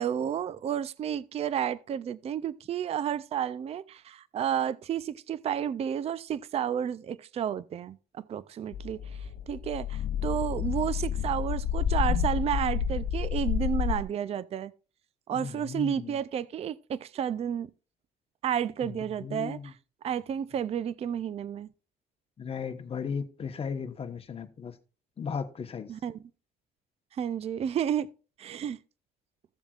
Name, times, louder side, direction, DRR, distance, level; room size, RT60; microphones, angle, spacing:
voice 1, 0.0-9.0 9.5-14.7 15.3-17.7 18.4-19.7 20.0-21.7 25.9-26.2 27.2-28.1 28.4-28.8, right 9 dB, 40° right, 0.4 m, -31 dB
sound 1, 8.7-14.0, left 8 dB, 70° left, 0.7 m, -30 dB
voice 2, 15.3-16.2 18.8-19.7 22.4-24.7 25.2-25.9, left 6 dB, 35° left, 1.2 m, -36 dB
15.0 x 7.1 x 2.4 m
cardioid pair, 110°, 17 cm